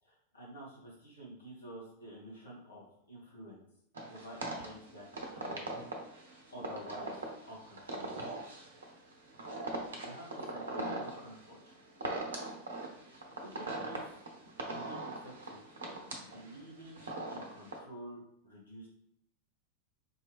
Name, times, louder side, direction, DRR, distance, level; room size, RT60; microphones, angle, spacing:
voice 1, 0.0-3.6 4.1-5.1 5.3-5.7 6.5-7.1 7.5-8.2 10.0-11.7 13.4-14.2 14.9-15.6 16.3-17.0 17.3-18.9, equal, 70° left, -4 dB, 1.6 m, -49 dB
sound 1, 4.0-17.8, right 2 dB, 65° right, 0.8 m, -41 dB
4.6 x 2.9 x 3.2 m, 0.73 s
figure-of-eight pair, 90°, 0 cm